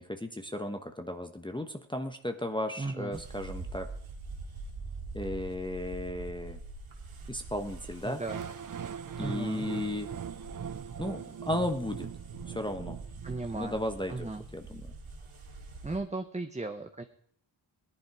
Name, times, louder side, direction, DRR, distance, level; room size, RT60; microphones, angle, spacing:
voice 1, 0.0-3.9 5.1-6.6 7.3-8.2 9.2-10.1 11.0-12.1 12.5-13.0 13.5-14.8, left 1 dB, 10° left, 5 dB, 1.0 m, -35 dB
voice 2, 2.8-3.2 8.0-8.4 9.2-9.7 13.2-13.8 14.1-14.4 15.8-17.0, right 3 dB, 15° right, 5 dB, 1.0 m, -36 dB
sound 1, 3.1-16.0, right 3 dB, 85° right, 2.6 m, -45 dB
sound 2, 8.3-14.3, right 7 dB, 45° right, 0.6 m, -41 dB
18.5 x 11.0 x 4.9 m, 0.64 s
wide cardioid pair, 85°, 47 cm